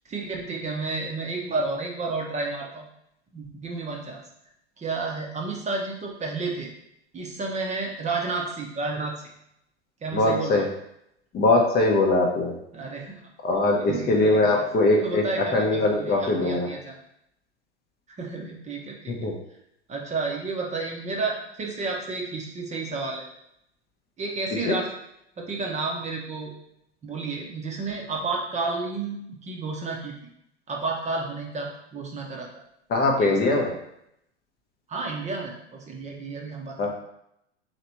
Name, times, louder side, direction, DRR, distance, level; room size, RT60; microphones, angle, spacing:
voice 1, 0.0-2.9 3.3-4.2 4.8-6.7 7.1-9.1 10.0-10.6 12.7-13.2 13.8-14.6 14.9-17.0 18.1-19.1 19.9-23.3 24.2-24.9 25.4-26.5 27.0-30.1 30.7-32.5 33.2-33.7 34.9-36.9, right 3 dB, 20° right, 0 dB, 0.8 m, -31 dB
voice 2, 10.1-10.6 11.3-12.5 13.4-15.2 15.5-16.7 19.2-19.3 24.7-24.8 32.9-33.7 36.8-36.9, left 2 dB, 25° left, 1 dB, 0.7 m, -21 dB
3.3 x 2.8 x 4.3 m, 0.78 s
hypercardioid pair, 100°, 35 cm